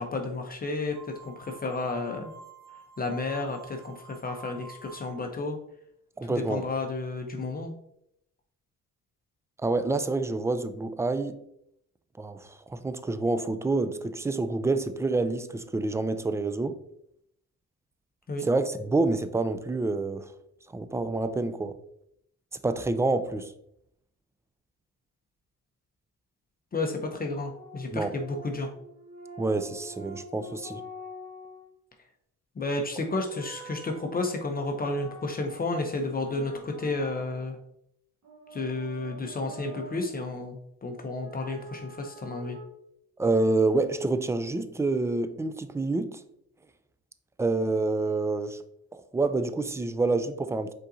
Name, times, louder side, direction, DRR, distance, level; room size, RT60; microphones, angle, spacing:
voice 1, 0.0-2.3 3.0-5.6 6.3-7.7 18.3-18.5 26.7-28.7 32.6-37.6 38.5-42.6, left 2 dB, 30° left, 3 dB, 0.6 m, -32 dB
sound 1, 0.9-5.3, right 4 dB, 35° right, 1.4 m, -49 dB
voice 2, 6.2-6.6 9.6-11.4 12.2-16.8 18.4-20.3 20.7-21.7 22.6-23.5 27.9-28.1 29.4-30.8 43.2-46.2 47.4-48.6 48.9-50.7, right 3 dB, 10° right, 11 dB, 0.3 m, -27 dB
sound 2, 27.4-31.7 32.8-35.7 36.0-37.7 38.2-40.1 41.2-42.6, right 1 dB, 60° right, 1.4 m, -46 dB
5.3 x 3.8 x 2.6 m, 0.75 s
cardioid pair, 90°, 30 cm